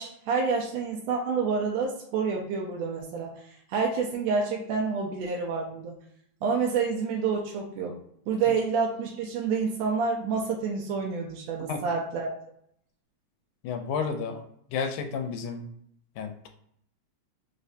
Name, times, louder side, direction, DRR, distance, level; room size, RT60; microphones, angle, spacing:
voice 1, 0.0-3.3 3.7-5.9 6.4-8.0 8.3-12.3, right 5 dB, 80° right, 0 dB, 1.5 m, -28 dB
voice 2, 13.6-14.5 14.7-15.6 16.2-16.5, left 5 dB, 85° left, 5 dB, 2.0 m, -31 dB
4.8 x 2.1 x 2.6 m, 0.70 s
omnidirectional pair, 3.4 m